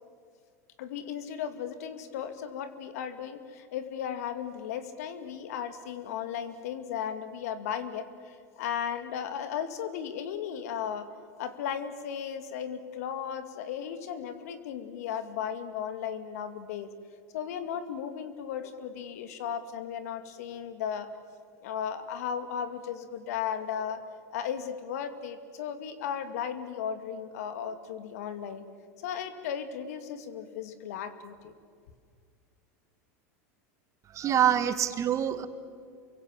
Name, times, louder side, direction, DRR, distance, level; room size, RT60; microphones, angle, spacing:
voice 1, 0.8-11.1 11.4-16.9 17.3-21.1 21.6-24.0 24.3-28.6 29.0-31.5, left 8 dB, 70° left, 10 dB, 2.4 m, -35 dB
voice 2, 34.1-35.5, right 10 dB, 35° right, 11 dB, 2.0 m, -25 dB
28.5 x 23.5 x 7.6 m, 2.2 s
hypercardioid pair, 95°, 9 cm